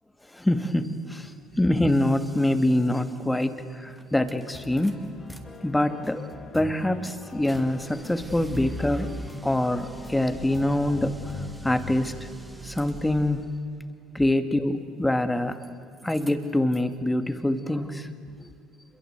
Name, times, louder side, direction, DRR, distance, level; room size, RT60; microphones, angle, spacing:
voice 1, 0.3-1.3 1.6-5.0 5.6-6.3 6.5-9.2 9.4-11.2 11.6-12.1 12.6-13.4 14.1-15.6 16.0-18.1 18.4-18.5, left 1 dB, 10° left, 9 dB, 2.2 m, -25 dB
sound 1, 3.4-3.5 3.9-5.4 5.7-13.5 15.0-15.7 15.9-16.9, right 2 dB, 10° right, 2.8 m, -43 dB
sound 2, 4.5-12.1, left 4 dB, 30° left, 2.5 m, -43 dB
28.5 x 22.5 x 8.2 m, 2.5 s
hypercardioid pair, 60°, 0 cm